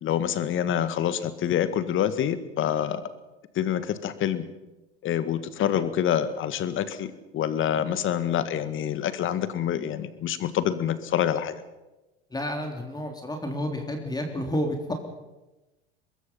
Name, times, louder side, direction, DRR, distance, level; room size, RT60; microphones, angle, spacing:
voice 1, 0.0-3.0 3.6-4.4 5.0-11.6, left 10 dB, 40° left, 12 dB, 1.9 m, -26 dB
voice 2, 12.3-14.9, equal, 10° left, 3 dB, 3.4 m, -30 dB
24.5 x 21.0 x 5.7 m, 1.0 s
figure-of-eight pair, 80°, 32 cm